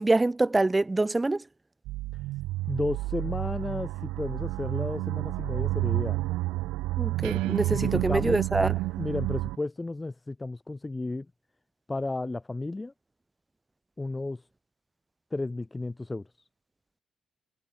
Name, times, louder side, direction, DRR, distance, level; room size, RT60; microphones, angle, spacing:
voice 1, 0.0-1.4 7.0-8.7, right 2 dB, 20° right, 2.4 m, -25 dB
sound 1, 1.8-9.6, right 18 dB, 75° right, 1.0 m, -30 dB
voice 2, 2.7-6.2 7.7-8.4 9.0-11.2 11.9-12.9 14.0-14.4 15.3-16.2, left 2 dB, 25° left, 1.6 m, -33 dB
hypercardioid pair, 40°, 0 cm